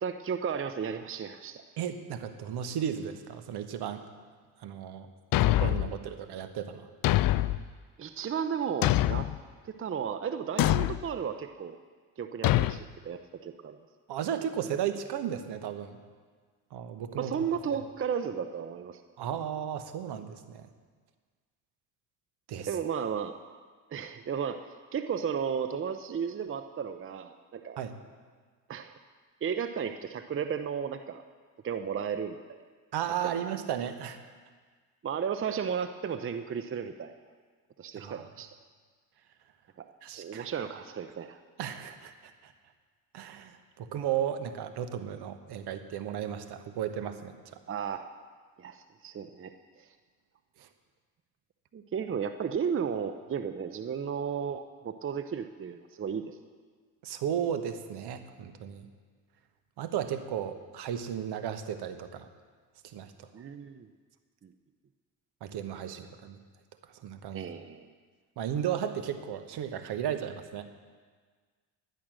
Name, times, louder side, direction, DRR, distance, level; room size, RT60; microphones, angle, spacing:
voice 1, 0.0-1.6 8.0-9.3 9.6-11.8 12.2-13.8 17.2-19.0 22.6-23.3 23.9-24.6 24.9-27.8 28.7-29.0 29.4-31.2 31.6-32.6 33.2-33.4 35.0-37.1 37.8-38.5 39.8-39.9 40.2-41.4 47.7-48.0 48.6-49.9 51.7-56.4 63.3-63.9 64.4-64.5 65.9-66.0 67.3-67.9, right 7 dB, 30° right, 9 dB, 0.7 m, -34 dB
voice 2, 1.8-4.0 4.6-5.1 5.4-6.9 14.1-16.0 16.7-17.4 19.2-20.7 22.5-22.7 27.8-27.9 32.9-34.2 38.0-38.2 40.0-40.5 41.6-42.5 43.1-47.3 50.6-50.7 57.0-58.9 59.8-62.3 62.8-63.3 65.4-66.4 67.0-67.5 68.4-70.7, right 9 dB, 60° right, 9 dB, 1.3 m, -34 dB
Thump thud, 5.3-5.9 7.0-7.6 8.8-9.4 10.6-11.0 12.4-12.8, left 15 dB, 55° left, 0.5 m, -24 dB
11.5 x 10.5 x 6.3 m, 1.5 s
supercardioid pair, 70°, 44 cm